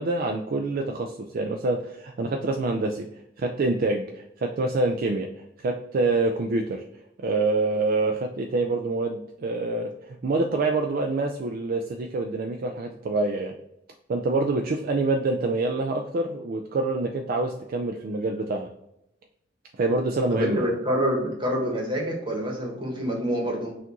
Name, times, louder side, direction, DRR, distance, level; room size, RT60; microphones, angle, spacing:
voice 1, 0.0-3.1 3.4-5.3 5.6-6.8 7.2-13.5 14.1-18.7 19.8-20.7, right 2 dB, 50° right, 3 dB, 0.4 m, -26 dB
voice 2, 20.3-23.8, equal, 25° right, 0 dB, 1.2 m, -27 dB
5.8 x 2.5 x 2.9 m, 0.83 s
head